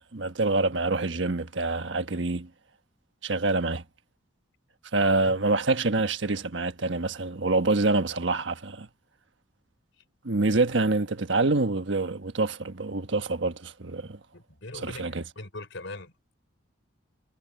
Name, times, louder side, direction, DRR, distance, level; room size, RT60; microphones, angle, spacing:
voice 1, 0.0-2.5 3.2-3.8 4.9-8.9 10.2-14.2 14.7-15.2, right 3 dB, 70° right, 1.3 m, -26 dB
voice 2, 5.0-5.3 14.0-16.1, left 2 dB, 70° left, 4.0 m, -42 dB
head